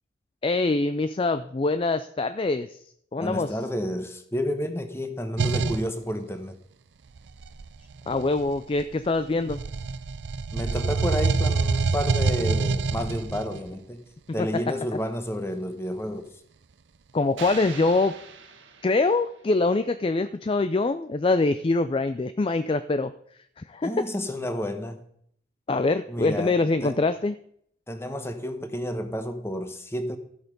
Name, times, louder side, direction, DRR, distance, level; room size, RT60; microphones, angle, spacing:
voice 1, 0.4-2.8 3.1-3.5 8.1-9.6 14.4-14.5 17.1-18.2 18.8-23.1 23.6-24.1 25.7-27.3, left 3 dB, 30° left, 12 dB, 0.4 m, -24 dB
voice 2, 3.2-6.6 10.5-14.0 14.3-16.3 23.8-25.0 26.1-26.5 26.8-27.0 27.9-30.2, equal, 15° left, 8 dB, 1.1 m, -30 dB
sound 1, 5.4-5.9 7.2-9.1 9.5-13.6, right 4 dB, 65° right, 0.5 m, -26 dB
sound 2, 17.4-19.5, right 6 dB, 80° right, 1.6 m, -42 dB
13.5 x 8.0 x 5.3 m, 0.67 s
head